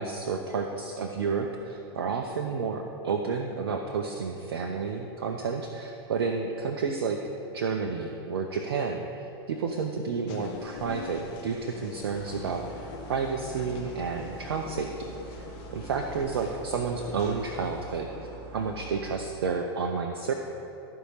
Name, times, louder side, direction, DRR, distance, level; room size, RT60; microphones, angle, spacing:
voice 1, 0.0-7.2 7.5-15.5 15.7-18.3 18.5-20.3, right 5 dB, 70° right, 4 dB, 0.7 m, -31 dB
sound 1, 10.3-18.0, left 5 dB, 45° left, 1.3 m, -45 dB
sound 2, 12.1-19.1, right 2 dB, 35° right, 1.8 m, -44 dB
14.0 x 4.8 x 5.6 m, 3.0 s
hypercardioid pair, 95°, 13 cm